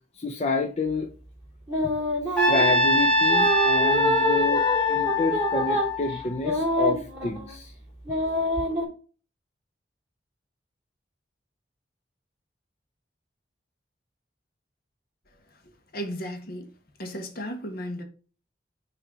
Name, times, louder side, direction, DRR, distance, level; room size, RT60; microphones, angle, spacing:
voice 1, 0.2-1.1 2.3-7.7, left 3 dB, 40° left, 0.6 m, -29 dB
sound 1, 1.7-2.8 3.3-7.6 8.0-8.8, equal, 15° right, 3.3 m, -26 dB
Trumpet, 2.4-6.6, left 2 dB, 5° left, 1.9 m, -23 dB
voice 2, 15.9-16.7 17.0-18.0, equal, 60° left, 1.5 m, -34 dB
6.0 x 3.3 x 5.2 m
head